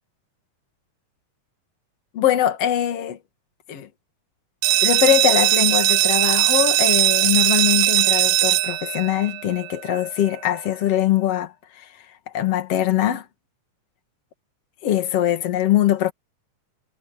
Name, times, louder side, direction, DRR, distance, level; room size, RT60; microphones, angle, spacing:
voice 1, 2.1-3.2 3.7-3.9 4.8-11.9 12.3-13.3 14.8-16.1, left 12 dB, 55° left, 2.9 m, -22 dB
sound 1, 4.6-10.1, right 16 dB, 90° right, 1.4 m, -19 dB
omnidirectional pair, 3.5 m